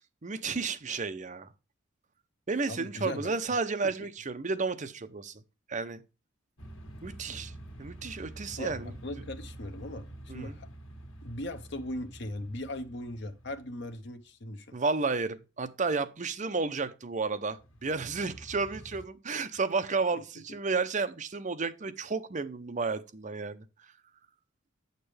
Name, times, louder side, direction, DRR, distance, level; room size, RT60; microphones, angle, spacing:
voice 1, 0.2-1.5 2.5-5.4 5.7-6.0 7.0-7.5 7.8-8.9 10.3-10.6 14.7-23.6, right 4 dB, 40° right, 0.6 m, -32 dB
voice 2, 2.7-3.3 8.6-10.7 11.2-14.7, left 1 dB, 60° left, 0.8 m, -39 dB
sound 1, 6.6-14.1 17.5-19.1, right 1 dB, 90° left, 1.6 m, -48 dB
8.6 x 6.7 x 3.3 m
head